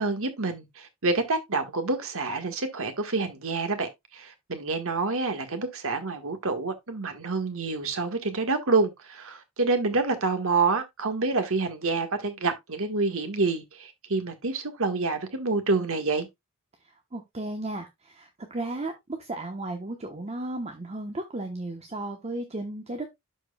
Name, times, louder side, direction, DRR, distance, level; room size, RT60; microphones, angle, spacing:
voice 1, 0.0-16.3, right 3 dB, 65° right, 1.6 m, -27 dB
voice 2, 17.1-23.1, right 2 dB, 30° right, 1.0 m, -34 dB
12.0 x 4.6 x 2.3 m
head